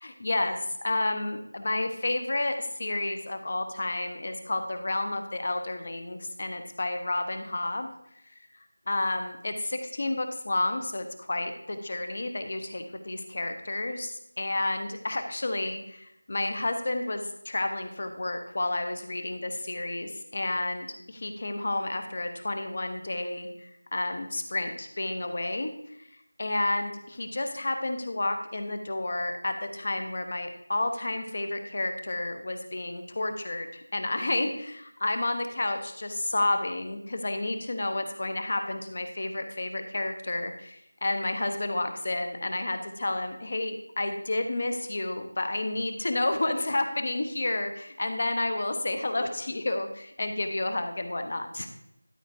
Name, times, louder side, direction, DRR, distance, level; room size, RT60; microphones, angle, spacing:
voice 1, 0.0-7.9 8.9-25.7 26.4-51.7, left 2 dB, 35° left, 7 dB, 0.9 m, -31 dB
12.0 x 4.9 x 4.4 m, 0.77 s
figure-of-eight pair, 175°, 0 cm